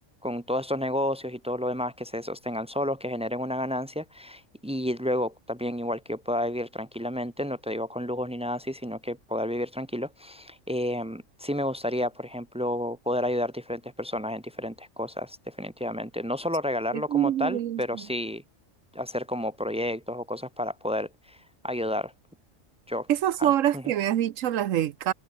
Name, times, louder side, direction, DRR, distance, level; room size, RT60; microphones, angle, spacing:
voice 1, 0.2-18.4 18.9-21.4 21.6-22.1 22.9-23.1 23.4-23.5 23.7-23.8, left 1 dB, 10° right, 0.3 m, -31 dB
voice 2, 16.9-18.0 23.1-25.1, right 11 dB, 80° right, 1.1 m, -25 dB
omnidirectional pair, 1.3 m